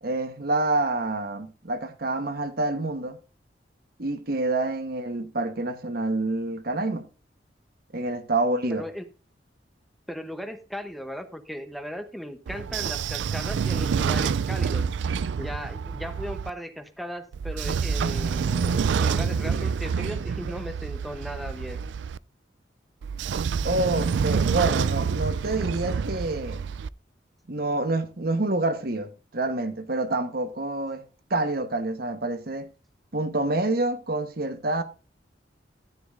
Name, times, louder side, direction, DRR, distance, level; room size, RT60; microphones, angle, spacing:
voice 1, 0.0-3.2 4.0-7.1 7.9-8.9 23.6-26.6 27.5-31.0 31.3-32.7 33.1-34.8, right 2 dB, 55° right, 1.1 m, -27 dB
voice 2, 10.1-14.8 15.4-21.8, equal, ahead, 0.8 m, -37 dB
Train / Sliding door, 12.5-16.5 17.3-22.2 23.0-26.9, right 6 dB, 80° right, 0.4 m, -27 dB
13.0 x 9.4 x 2.5 m
head